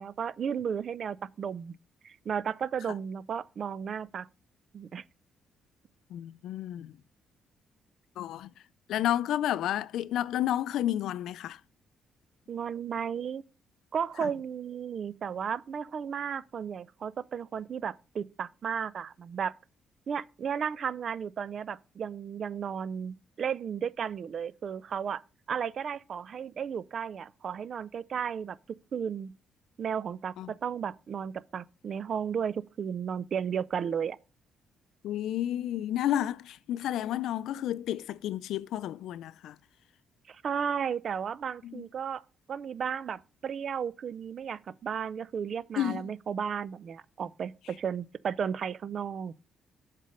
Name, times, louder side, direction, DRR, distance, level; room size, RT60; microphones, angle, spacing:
voice 1, 0.0-1.7 2.0-4.3 4.7-5.0 12.5-13.4 13.9-19.5 20.1-25.2 25.5-28.6 28.9-29.3 29.8-34.2 40.3-42.2 42.5-49.3, right 7 dB, 55° right, 0.4 m, -34 dB
voice 2, 6.1-6.9 8.2-8.5 8.9-11.6 14.2-14.3 30.4-30.5 35.0-39.6 41.6-41.8 45.8-46.1, left 12 dB, 80° left, 0.4 m, -31 dB
7.4 x 4.1 x 6.4 m
cardioid pair, 90°, 0 cm